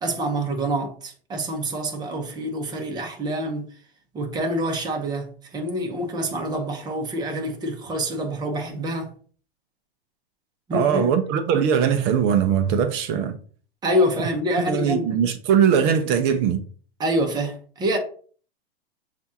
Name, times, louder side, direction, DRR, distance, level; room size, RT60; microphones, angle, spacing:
voice 1, 0.0-3.8 4.1-9.1 10.7-11.1 13.8-15.1 17.0-18.0, equal, 15° right, 0.8 m, -26 dB
voice 2, 10.7-13.4 14.7-16.6, right 8 dB, 35° right, 0.5 m, -20 dB
6.8 x 2.5 x 2.7 m
hypercardioid pair, 130°, 30 cm